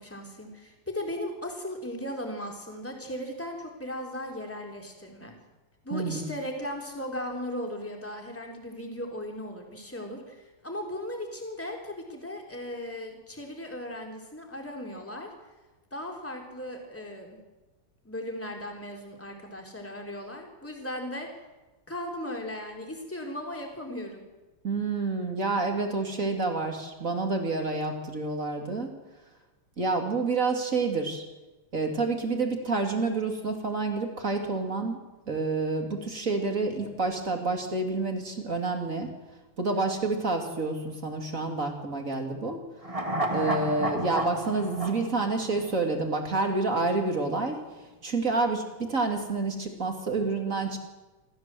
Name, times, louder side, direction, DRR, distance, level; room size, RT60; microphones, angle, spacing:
voice 1, 0.0-5.3 5.8-15.3 15.9-17.4 18.0-21.3 21.9-24.3, left 1 dB, 5° left, 1 dB, 3.8 m, -37 dB
voice 2, 5.9-6.2 24.6-28.9 29.8-31.2 31.7-35.0 35.3-39.1 39.6-42.6 43.3-47.6 48.0-50.8, right 3 dB, 35° right, 4 dB, 3.1 m, -28 dB
sound 1, 42.8-46.2 46.5-46.6, right 1 dB, 15° right, 1.8 m, -31 dB
27.5 x 15.0 x 7.8 m, 1.1 s
omnidirectional pair, 2.4 m